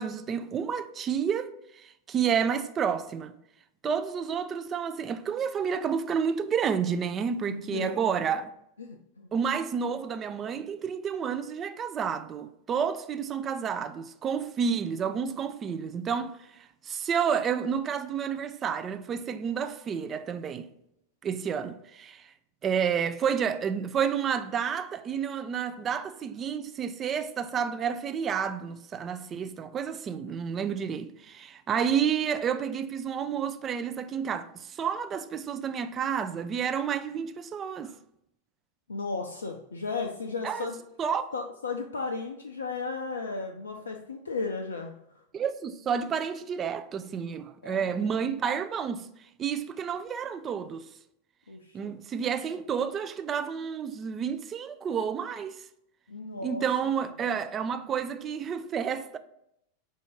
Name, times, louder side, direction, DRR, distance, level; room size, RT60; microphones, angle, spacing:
voice 1, 0.0-3.4 3.8-8.5 9.3-20.7 21.2-22.3 22.6-37.9 40.4-40.7 41.0-41.3 45.3-49.1 49.4-50.9 51.7-55.6 56.4-59.2, right 7 dB, 25° right, 0.3 m, -30 dB
voice 2, 7.5-8.0 8.8-9.3 38.9-40.8 41.3-45.2 47.6-48.1 51.5-52.0 56.1-56.6, left 4 dB, 70° left, 0.4 m, -35 dB
5.1 x 2.6 x 3.6 m
figure-of-eight pair, 90°, 0 cm